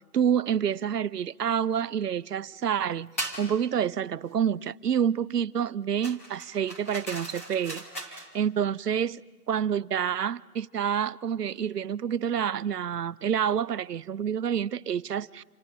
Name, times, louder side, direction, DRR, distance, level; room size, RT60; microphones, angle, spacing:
voice 1, 0.1-9.2 9.5-15.4, right 8 dB, 85° right, 0.7 m, -28 dB
sound 1, 3.2-3.5 6.0-8.3, right 1 dB, 10° left, 0.7 m, -37 dB
30.0 x 27.0 x 5.2 m
figure-of-eight pair, 155°, 46 cm